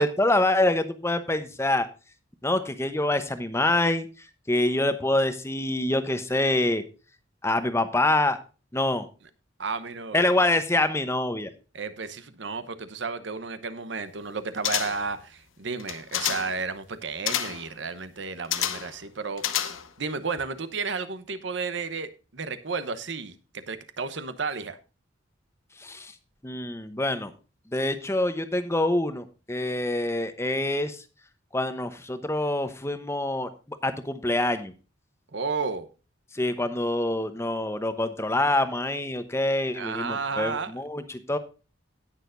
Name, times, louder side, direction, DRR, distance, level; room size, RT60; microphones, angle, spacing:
voice 1, 0.0-1.9 2.4-6.8 7.4-8.4 8.7-9.1 10.1-11.5 25.8-26.2 26.4-27.3 27.7-31.0 31.5-34.7 36.3-41.4, left 1 dB, 15° left, 0.9 m, -26 dB
voice 2, 9.6-10.3 11.7-24.8 35.3-35.9 39.7-40.7, right 4 dB, 65° right, 0.9 m, -33 dB
sound 1, 14.6-15.2 15.8-16.6 17.3-17.7 18.5-19.0 19.4-20.0 20.4-20.5, left 10 dB, 85° left, 0.9 m, -29 dB
17.5 x 6.7 x 2.6 m
head